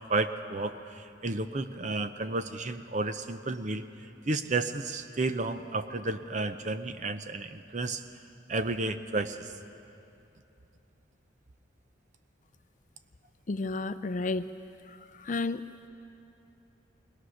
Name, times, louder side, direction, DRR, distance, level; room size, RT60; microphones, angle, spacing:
voice 1, 0.0-3.9 4.3-8.0 8.5-9.5, right 3 dB, 40° right, 10 dB, 0.7 m, -32 dB
voice 2, 13.5-14.5 14.9-15.6, left 3 dB, 40° left, 12 dB, 0.5 m, -32 dB
20.5 x 20.0 x 6.5 m, 2.8 s
head